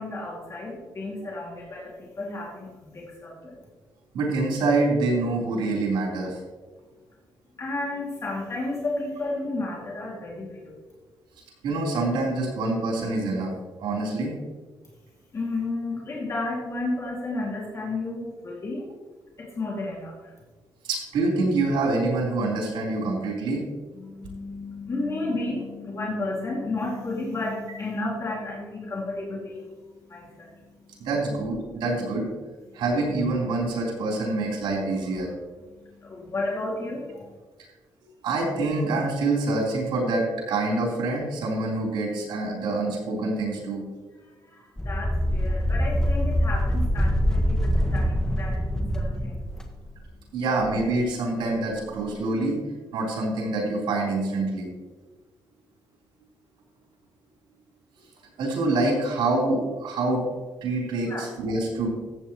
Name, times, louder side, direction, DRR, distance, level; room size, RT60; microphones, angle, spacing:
voice 1, 0.0-3.6 7.6-10.7 15.3-18.8 19.4-20.3 23.9-31.1 32.7-32.8 35.7-37.4 44.2-49.4 61.1-61.2, left 2 dB, 35° left, -4 dB, 2.4 m, -32 dB
voice 2, 4.1-6.4 11.6-13.5 13.8-14.3 20.8-23.6 31.0-32.3 32.7-35.3 38.2-43.8 50.3-52.6 52.9-54.7 58.4-60.2 60.6-61.9, right 2 dB, 90° right, -3 dB, 3.7 m, -26 dB
sound 1, 44.8-49.7, equal, 5° left, 1.5 m, -24 dB
14.0 x 8.3 x 3.1 m, 1.3 s
cardioid pair, 110°, 8 cm